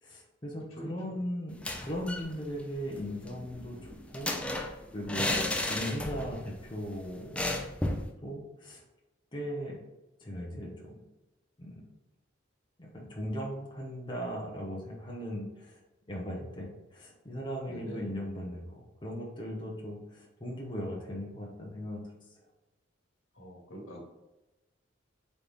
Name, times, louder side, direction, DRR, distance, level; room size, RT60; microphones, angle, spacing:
voice 1, 0.0-1.5 1.8-3.8 4.1-4.3 4.9-5.3 5.6-7.5 8.2-8.8 9.3-9.8 10.2-11.0 11.6-11.8 12.8-15.8 16.1-22.0, equal, 25° left, -3 dB, 0.8 m, -38 dB
voice 2, 0.8-1.2 5.3-5.6 17.7-18.1 23.4-24.0, right 1 dB, 80° left, -2 dB, 1.3 m, -44 dB
sound 1, 1.5-2.3 2.6-2.7 3.0-6.4 6.7-6.8 7.4-8.1, left 1 dB, 5° left, 0.4 m, -33 dB
4.0 x 3.2 x 3.5 m, 1.0 s
head